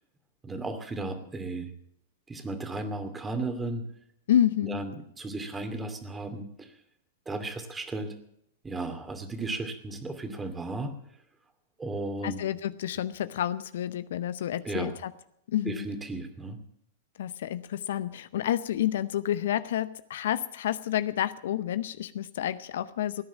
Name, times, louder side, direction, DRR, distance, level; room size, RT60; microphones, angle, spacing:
voice 1, 0.4-1.7 2.3-3.8 4.6-6.7 7.3-8.1 8.6-10.9 11.8-12.4 14.6-14.9 15.7-16.6, right 2 dB, 15° right, 8 dB, 2.5 m, -35 dB
voice 2, 4.3-4.8 12.2-15.1 15.5-15.9 17.2-23.2, left 11 dB, 65° left, 15 dB, 0.7 m, -29 dB
17.5 x 10.5 x 7.4 m, 0.75 s
hypercardioid pair, 105°, 0 cm